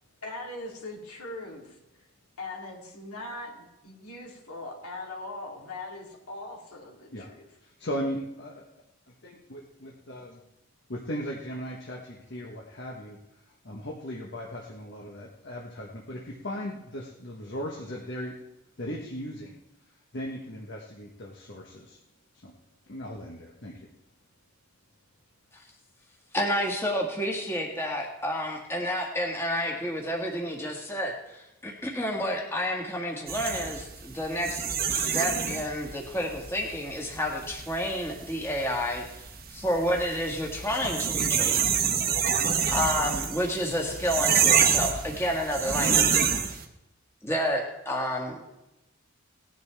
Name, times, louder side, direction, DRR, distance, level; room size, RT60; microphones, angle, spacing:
voice 1, 0.2-1.7 2.4-7.5, left 2 dB, 90° left, -1 dB, 3.2 m, -40 dB
voice 2, 7.6-8.6 9.2-10.4 10.9-13.2 13.6-18.3 18.8-19.6 20.1-22.0 22.3-22.5 22.9-23.9, equal, 50° left, -1 dB, 1.3 m, -37 dB
voice 3, 26.3-41.7 42.7-46.3 47.2-48.4, equal, 10° left, 0 dB, 1.7 m, -30 dB
sound 1, 33.3-46.6, right 7 dB, 45° right, 1.1 m, -27 dB
18.0 x 10.5 x 3.5 m, 0.92 s
head